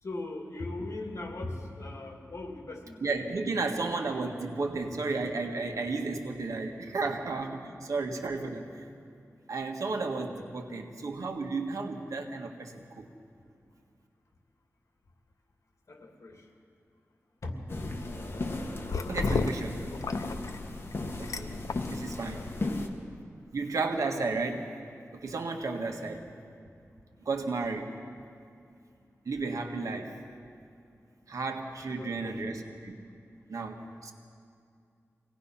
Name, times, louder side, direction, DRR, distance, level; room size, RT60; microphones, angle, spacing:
voice 1, 0.0-3.2 15.9-16.5 17.4-17.6 18.0-18.1 19.4-19.9 22.2-22.8 26.0-26.1 27.1-27.2 31.9-32.6, left 2 dB, 60° left, 2 dB, 2.9 m, -40 dB
voice 2, 3.0-8.7 9.5-13.1 19.1-19.8 21.2-21.5 21.9-22.4 23.5-24.7 25.1-26.2 27.3-27.9 29.3-30.2 31.3-32.9 33.5-34.1, right 3 dB, 80° right, 3 dB, 1.7 m, -33 dB
sound 1, 17.7-22.9, left 2 dB, 45° left, 1.7 m, -35 dB
sound 2, 18.8-22.8, left 4 dB, 85° left, 0.7 m, -36 dB
25.0 x 18.0 x 5.8 m, 2.4 s
wide cardioid pair, 105°, 6 cm